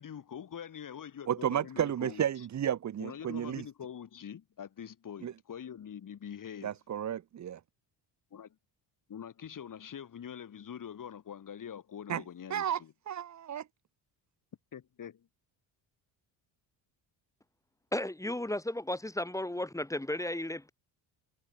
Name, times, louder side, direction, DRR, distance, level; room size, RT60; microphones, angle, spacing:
voice 1, 0.0-2.5 3.0-6.8 8.3-8.6 9.1-12.9 14.7-15.3, left 8 dB, 45° left, 4.1 m, -44 dB
voice 2, 1.3-3.6 5.2-5.3 6.6-7.6 12.1-12.2 12.5-12.8 13.1-13.6, right 10 dB, 35° right, 1.0 m, -32 dB
voice 3, 17.9-20.7, left 1 dB, 5° left, 2.0 m, -34 dB
cardioid pair, 130°, 46 cm